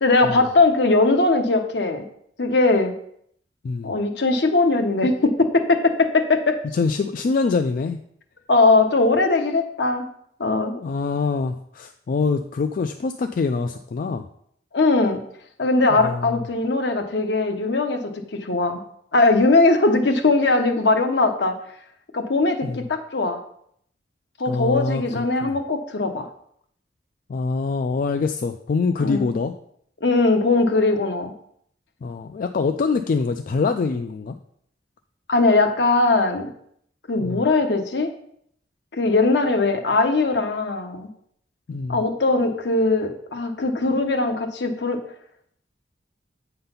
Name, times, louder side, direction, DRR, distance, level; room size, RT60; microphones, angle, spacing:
voice 1, 0.0-2.0 2.4-2.9 3.8-6.6 8.5-10.1 10.4-10.7 14.7-15.2 15.6-18.8 19.1-21.5 22.1-23.4 24.4-26.3 29.0-29.2 30.0-31.3 35.3-36.5 37.1-38.1 38.9-41.1 41.9-45.0, left 3 dB, 70° left, 6 dB, 0.9 m, -20 dB
voice 2, 6.7-8.0 10.7-14.2 16.0-16.5 22.6-22.9 24.5-25.6 27.3-29.5 32.0-34.4 37.2-37.4 41.7-42.0, left 4 dB, 50° left, 6 dB, 0.3 m, -25 dB
7.8 x 3.9 x 5.6 m, 0.68 s
head